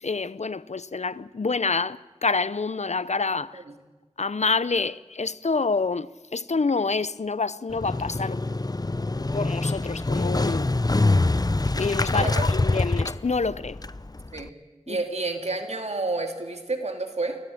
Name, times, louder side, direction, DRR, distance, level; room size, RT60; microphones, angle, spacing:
voice 1, 0.0-3.6 4.2-8.4 9.2-10.7 11.8-13.8 14.9-15.0, left 4 dB, 85° left, 0.7 m, -27 dB
Motorcycle, 7.7-14.5, left 2 dB, 35° left, 0.7 m, -25 dB
voice 2, 12.2-12.5 14.3-14.5 14.9-17.4, right 3 dB, 75° right, 2.6 m, -30 dB
24.5 x 17.5 x 8.6 m
wide cardioid pair, 45°, 11 cm